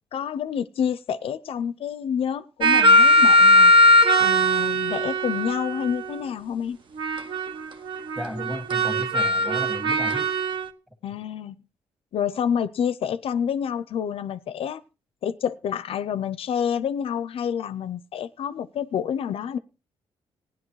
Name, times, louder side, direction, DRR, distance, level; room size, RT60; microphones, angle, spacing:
voice 1, 0.1-3.7 4.2-6.8 11.0-11.6 12.1-14.8 15.2-19.6, left 8 dB, 65° left, 0.5 m, -28 dB
sound 1, 2.6-6.1 7.0-7.5 7.9-10.7, left 1 dB, 55° right, 1.1 m, -19 dB
voice 2, 8.2-10.3, equal, 5° right, 1.8 m, -34 dB
17.0 x 10.5 x 3.1 m
cardioid pair, 95°, 10 cm